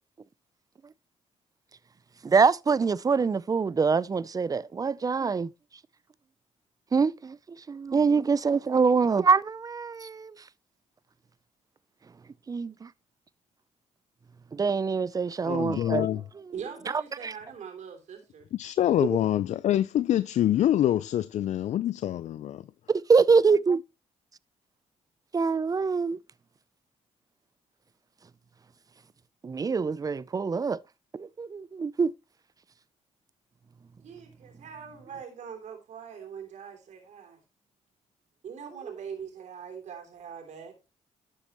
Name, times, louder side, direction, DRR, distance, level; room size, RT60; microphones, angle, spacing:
voice 1, 2.2-5.5 6.9-7.4 7.7-10.3 12.5-12.9 14.5-16.1 16.9-17.3 19.0-19.1 22.9-23.8 25.3-26.2 29.4-30.8 31.1-32.1, right 5 dB, 30° right, 0.5 m, -24 dB
voice 2, 15.5-16.2 18.5-22.6, left 12 dB, 65° left, 0.5 m, -25 dB
voice 3, 16.5-18.5 34.0-37.4 38.4-40.8, right 7 dB, 70° right, 3.2 m, -42 dB
11.5 x 7.7 x 3.0 m
cardioid pair, 80°, 13 cm